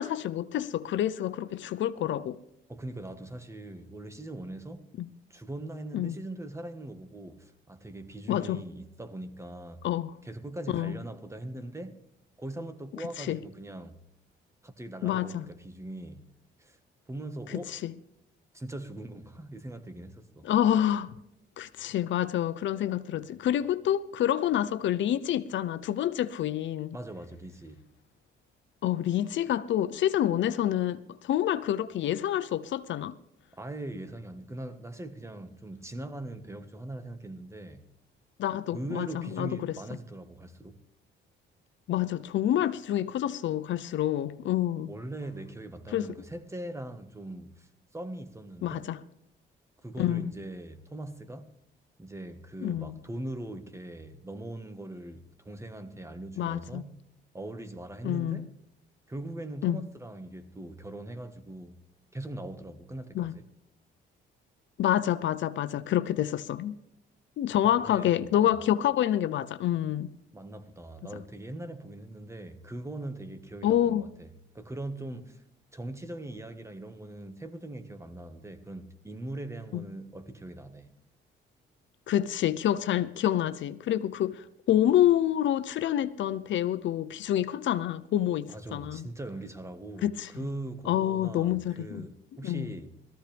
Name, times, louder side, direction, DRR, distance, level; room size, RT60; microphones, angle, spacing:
voice 1, 0.0-2.4 5.0-5.1 5.9-6.2 8.3-8.6 9.8-10.2 10.7-11.0 13.2-13.4 15.0-15.5 17.5-17.9 20.4-21.1 21.6-27.0 28.8-33.1 38.4-39.8 41.9-44.9 45.9-46.1 48.6-49.0 50.0-50.3 52.6-53.0 56.4-56.8 58.0-58.5 59.6-59.8 63.1-63.3 64.8-66.7 67.4-70.1 73.6-74.1 79.7-79.8 82.1-89.0 90.0-90.3 90.9-92.1 92.4-92.7, left 11 dB, 70° left, 0.7 m, -28 dB
voice 2, 2.7-4.9 5.3-9.8 10.2-12.0 12.4-14.0 14.6-16.2 16.6-16.8 17.1-17.7 18.5-20.5 26.9-27.8 33.5-37.8 38.7-40.8 44.9-48.9 49.8-51.5 52.0-57.0 57.3-58.5 59.1-61.8 62.1-63.4 67.9-68.6 70.3-74.3 74.5-75.4 75.7-80.9 88.5-92.9, right 1 dB, 15° right, 1.5 m, -41 dB
18.0 x 14.5 x 3.4 m
cardioid pair, 90°, 20 cm